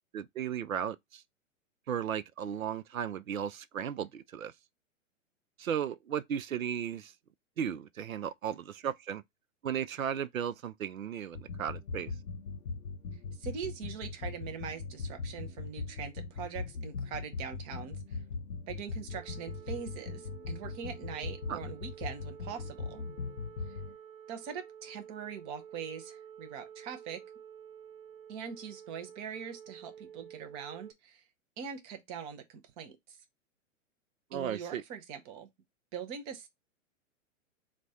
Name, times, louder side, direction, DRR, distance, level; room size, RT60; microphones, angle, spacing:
voice 1, 0.1-1.2 1.9-4.5 5.6-7.1 7.6-9.2 9.6-12.1 21.5-21.6 34.3-34.8, right 8 dB, 85° right, 0.5 m, -35 dB
sound 1, 11.3-23.9, left 4 dB, 90° left, 0.6 m, -40 dB
voice 2, 13.3-18.2 18.7-23.0 23.7-23.8 24.3-27.2 28.3-31.2 31.6-33.2 34.3-35.5 35.9-36.5, right 7 dB, 15° right, 0.3 m, -42 dB
sound 2, 19.1-30.9, right 8 dB, 30° right, 0.7 m, -51 dB
4.1 x 2.1 x 4.6 m
figure-of-eight pair, 110°, 40 cm